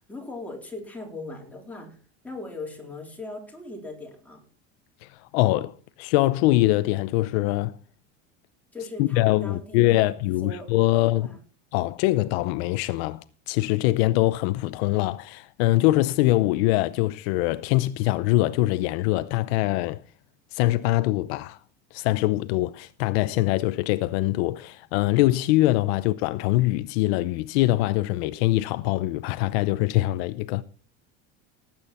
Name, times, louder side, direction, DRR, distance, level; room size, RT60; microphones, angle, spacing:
voice 1, 0.1-2.0 2.2-4.4 8.7-10.1 10.4-11.4, left 2 dB, 5° left, 3.9 m, -39 dB
voice 2, 5.0-7.8 9.0-11.3 11.7-20.0 20.5-21.6 21.9-30.6, left 17 dB, 70° left, 0.7 m, -23 dB
18.0 x 8.9 x 4.3 m
cardioid pair, 150°, 32 cm